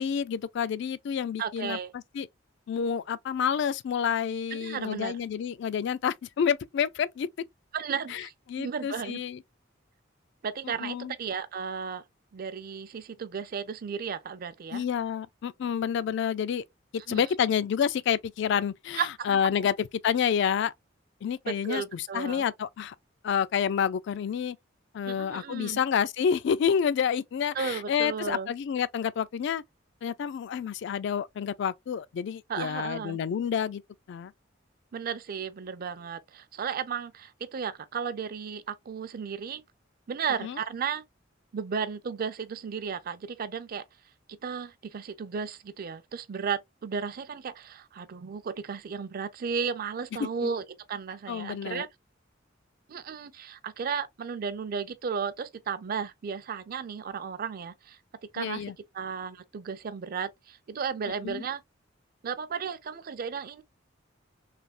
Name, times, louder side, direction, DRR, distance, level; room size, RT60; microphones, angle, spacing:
voice 1, 0.0-1.8 2.1-2.3 2.7-7.3 8.1-8.2 8.5-9.4 10.6-11.1 14.7-16.6 17.1-20.7 21.2-22.9 23.2-24.6 24.9-29.6 30.0-33.8 34.1-34.3 40.4-40.6 50.4-50.5 51.3-51.9 58.4-58.7 61.2-61.4, left 7 dB, 65° left, 0.3 m, -29 dB
voice 2, 1.4-1.9 4.5-5.1 7.7-9.2 10.4-12.0 12.3-14.8 17.1-17.3 19.0-19.5 21.5-22.4 25.1-25.8 27.5-28.5 32.5-33.2 34.9-39.6 40.1-41.0 41.5-43.8 44.4-51.9 52.9-58.0 58.3-58.7 58.9-61.6 62.2-63.6, right 6 dB, 50° right, 0.4 m, -34 dB
3.3 x 2.7 x 2.4 m
head